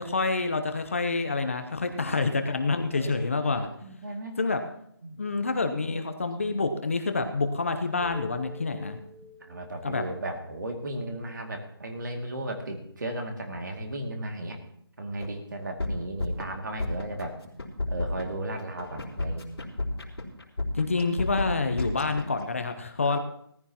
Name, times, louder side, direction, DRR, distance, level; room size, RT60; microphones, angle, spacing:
voice 1, 0.0-3.7 4.4-4.6 5.2-9.0 9.8-10.0 20.7-23.2, left 3 dB, 30° left, 7 dB, 0.8 m, -27 dB
voice 2, 1.8-2.2 2.9-4.4 5.0-5.2 9.4-14.6 15.0-17.4 17.9-19.5 23.0-23.2, right 1 dB, 45° right, 3 dB, 2.3 m, -35 dB
sound 1, 8.0-12.1, left 1 dB, 75° right, 4.8 m, -49 dB
sound 2, 15.2-15.3 15.6-16.5 16.8-17.3 17.6-22.4, left 2 dB, 70° left, 3.8 m, -31 dB
18.5 x 14.5 x 3.0 m, 0.72 s
figure-of-eight pair, 170°, 14 cm